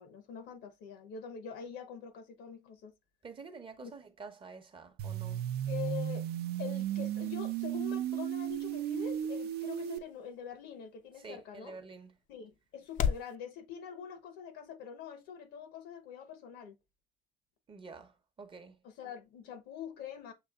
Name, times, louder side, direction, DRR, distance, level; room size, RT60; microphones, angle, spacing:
voice 1, 0.0-2.9 3.8-3.9 5.7-6.3 6.6-11.8 12.3-16.8 18.8-20.3, left 8 dB, 90° left, 0.9 m, -44 dB
voice 2, 3.2-5.5 11.2-12.2 17.7-18.8, right 4 dB, 30° right, 0.7 m, -49 dB
sound 1, 5.0-10.0, right 11 dB, 70° right, 0.4 m, -35 dB
sound 2, 7.1-13.4, left 8 dB, 50° left, 0.4 m, -41 dB
6.7 x 2.6 x 2.3 m
cardioid pair, 110°, 17 cm